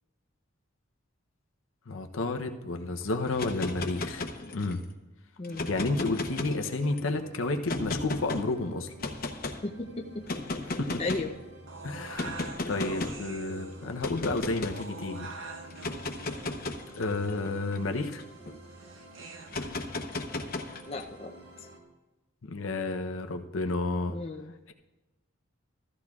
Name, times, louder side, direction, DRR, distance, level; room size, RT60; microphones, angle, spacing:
voice 1, 1.9-4.2 4.5-4.8 5.7-8.9 10.8-11.0 11.8-12.4 12.7-15.3 17.0-18.2 22.4-24.2, left 2 dB, 75° left, 5 dB, 0.7 m, -31 dB
sound 1, 3.3-4.8 5.4-7.0 7.7-8.4 9.0-9.6 10.2-11.3 12.2-13.2 14.0-14.8 15.7-18.5 19.5-21.0, left 2 dB, 45° left, 0.9 m, -35 dB
voice 2, 5.4-5.7 9.6-10.2 11.0-11.3 20.9-21.4 24.1-24.5, left 2 dB, 30° left, 1 dB, 0.5 m, -35 dB
sound 2, 5.4-21.8, right 1 dB, 55° right, 1.5 m, -50 dB
sound 3, 11.7-19.7, right 3 dB, 70° right, 0.8 m, -46 dB
14.5 x 13.5 x 2.4 m, 1.1 s
head